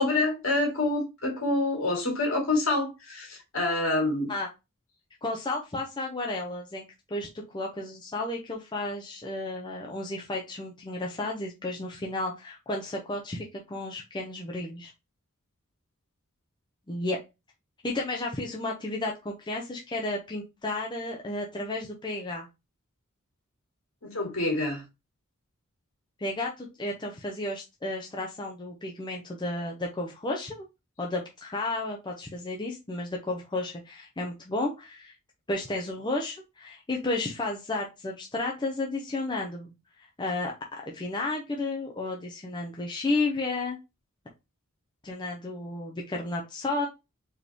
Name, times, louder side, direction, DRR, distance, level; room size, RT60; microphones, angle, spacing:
voice 1, 0.0-4.3 24.0-24.8, left 2 dB, 70° left, 2.4 m, -27 dB
voice 2, 5.2-6.8 7.1-14.9 16.9-17.2 17.8-22.5 26.2-30.7 31.0-35.1 35.5-39.7 40.2-40.5 40.9-43.8 45.0-46.9, left 2 dB, 20° left, 0.7 m, -32 dB
4.5 x 3.2 x 3.5 m
head